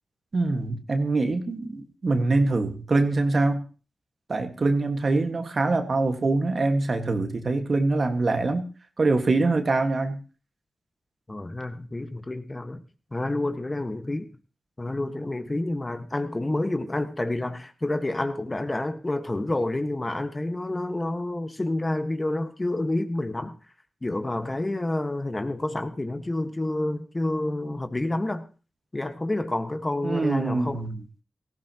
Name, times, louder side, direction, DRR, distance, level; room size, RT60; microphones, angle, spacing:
voice 1, 0.3-3.6 4.3-8.7 9.0-10.2 30.0-30.9, right 3 dB, 55° right, 1.7 m, -24 dB
voice 2, 11.3-12.8 13.1-14.3 14.8-23.5 24.0-28.4 28.9-30.8, left 2 dB, 25° left, 1.4 m, -29 dB
18.0 x 15.0 x 3.0 m
cardioid pair, 55°, 0 cm